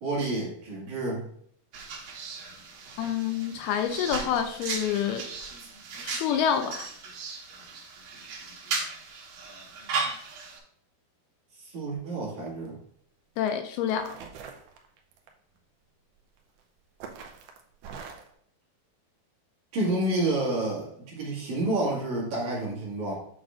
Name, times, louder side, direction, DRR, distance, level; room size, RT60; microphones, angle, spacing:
voice 1, 0.0-1.3 11.6-12.7 19.7-23.1, right 2 dB, 50° right, -5 dB, 2.9 m, -29 dB
sound 1, 1.7-10.6, right 4 dB, 70° right, 2.9 m, -36 dB
voice 2, 3.0-5.3 6.0-6.9 13.4-14.2, left 8 dB, 80° left, 7 dB, 2.4 m, -27 dB
sound 2, 12.4-12.7 13.5-13.6 13.9-15.3 16.4-16.6 17.0-18.3, right 6 dB, 85° right, 1.8 m, -43 dB
8.3 x 6.4 x 2.5 m, 0.64 s
omnidirectional pair, 4.6 m